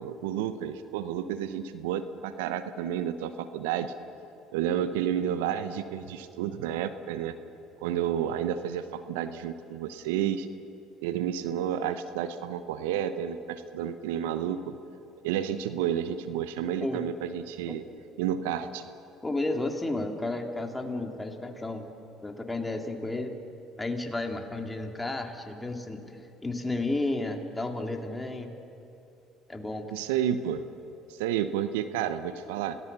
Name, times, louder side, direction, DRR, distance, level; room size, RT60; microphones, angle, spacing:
voice 1, 0.0-3.9 4.5-7.4 7.8-10.5 11.0-14.7 15.2-17.8 18.2-18.8 29.9-30.6 31.1-32.8, right 9 dB, 75° right, 11 dB, 0.9 m, -31 dB
voice 2, 19.2-21.9 22.2-23.3 23.8-28.5 29.5-29.9, left 2 dB, 15° left, 4 dB, 2.8 m, -32 dB
28.5 x 18.5 x 6.9 m, 2.8 s
hypercardioid pair, 65°, 0 cm